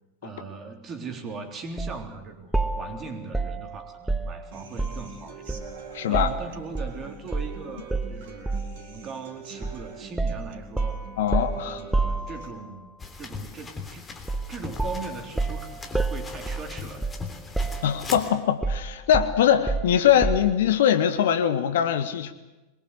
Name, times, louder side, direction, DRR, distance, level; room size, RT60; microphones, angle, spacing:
voice 1, 0.2-5.5 6.1-11.0 11.6-12.9 13.2-14.1 14.5-17.0, right 4 dB, 25° right, 4 dB, 3.6 m, -39 dB
sound 1, 1.8-2.0 2.5-5.1 5.5-7.0 7.3-7.5 7.9-8.8 9.6-9.8 10.2-12.7 14.3-14.5 14.8-17.3 17.5-18.2 18.6-20.6, right 3 dB, 5° right, 1.1 m, -29 dB
Human voice / Acoustic guitar, 4.5-12.5, right 5 dB, 50° right, 3.9 m, -44 dB
voice 2, 5.9-6.3 11.2-11.8 17.8-22.3, left 9 dB, 55° left, 10 dB, 1.5 m, -22 dB
sound 2, 13.0-18.3, left 4 dB, 15° left, 3.3 m, -40 dB
23.5 x 22.0 x 8.2 m, 1.0 s
figure-of-eight pair, 90°, 0 cm